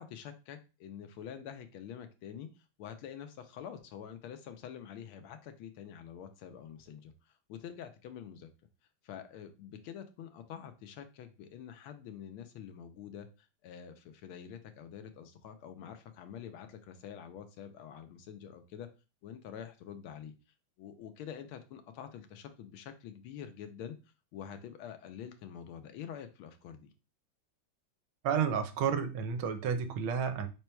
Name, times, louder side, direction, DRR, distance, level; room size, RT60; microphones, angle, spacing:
voice 1, 0.0-2.5 2.8-7.1 7.5-8.5 9.0-18.9 19.2-20.3 20.8-24.0 24.3-26.9, left 8 dB, 85° left, 1.5 m, -46 dB
voice 2, 28.2-30.5, right 7 dB, 80° right, 1.5 m, -31 dB
5.2 x 4.5 x 2.2 m
omnidirectional pair, 2.3 m